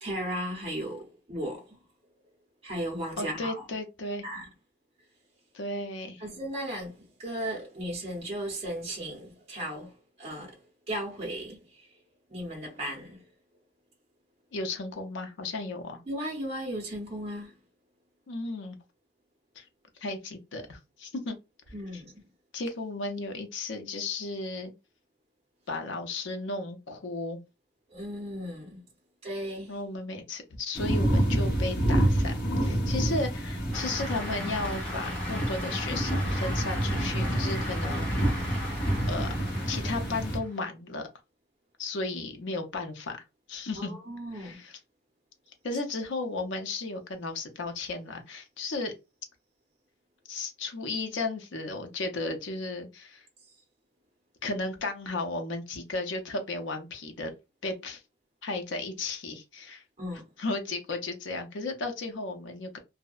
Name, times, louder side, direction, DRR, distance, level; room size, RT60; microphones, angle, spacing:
voice 1, 0.0-1.8 2.6-3.6 4.2-4.4 6.2-9.9 10.2-10.6 10.9-11.8 12.3-13.2 16.1-17.5 21.7-22.1 27.9-28.8 29.2-29.7 43.8-44.6 60.0-60.2, right 1 dB, 35° right, 0.6 m, -36 dB
voice 2, 3.2-4.2 5.5-6.2 14.5-16.0 18.3-18.8 19.6-19.7 20.0-21.4 21.7-22.0 22.5-24.7 25.7-27.4 29.7-32.3 32.6-38.3 39.1-39.3 39.7-41.1 41.8-43.2 43.5-44.0 44.3-44.8 45.6-48.9 50.3-53.2 54.4-57.3 57.6-58.0 58.4-59.8 60.4-62.8, left 2 dB, 85° left, 0.6 m, -34 dB
sound 1, 30.7-40.4, right 1 dB, 50° left, 1.3 m, -28 dB
Cheering / Applause, 33.7-40.6, left 1 dB, 5° left, 0.8 m, -39 dB
2.6 x 2.0 x 2.3 m
head